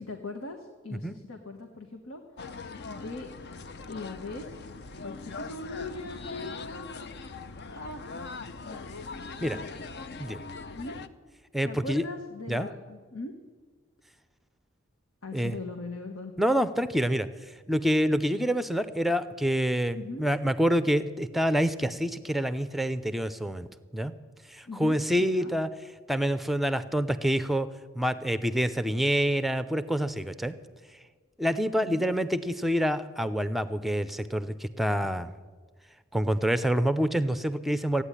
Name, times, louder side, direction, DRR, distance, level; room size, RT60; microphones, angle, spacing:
voice 1, 0.0-2.2 2.8-3.3 3.9-4.7 5.0-8.0 8.6-8.8 9.4-9.6 10.7-10.9 11.6-13.3 15.2-16.3 19.9-20.2 24.6-25.5 31.8-32.1, left 3 dB, 80° left, 4 dB, 1.3 m, -40 dB
sound 1, 2.4-11.1, left 3 dB, 55° left, 0.6 m, -41 dB
voice 2, 11.5-12.0 12.5-12.7 15.3-15.6 16.4-17.3 17.7-24.1 24.5-25.7 26.1-27.7 27.9-30.6 31.4-35.3 36.1-38.0, equal, ahead, 12 dB, 0.6 m, -27 dB
15.0 x 8.9 x 9.9 m, 1.5 s
head